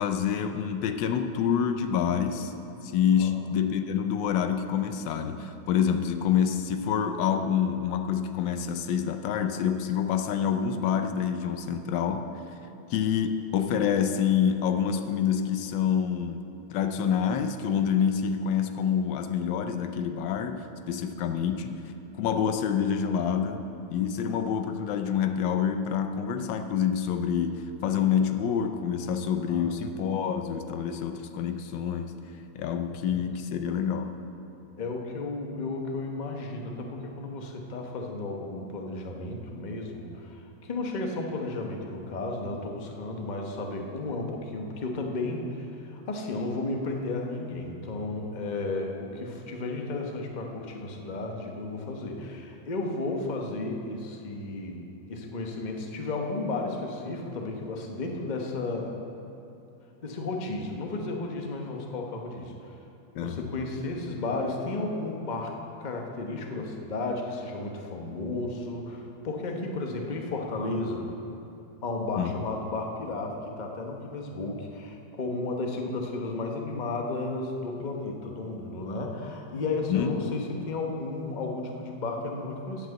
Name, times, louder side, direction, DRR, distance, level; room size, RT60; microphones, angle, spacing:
voice 1, 0.0-2.5 2.8-12.3 12.9-16.5 16.7-21.8 22.1-32.1 32.5-34.2 63.1-63.5 72.2-72.3 79.9-80.4, left 8 dB, 80° left, 8 dB, 1.3 m, -27 dB
voice 2, 32.9-33.2 34.8-54.8 55.1-58.9 60.0-62.8 63.2-65.5 65.8-71.1 71.8-82.9, left 2 dB, 30° left, 1 dB, 0.9 m, -33 dB
8.8 x 8.0 x 8.0 m, 2.9 s
omnidirectional pair, 2.0 m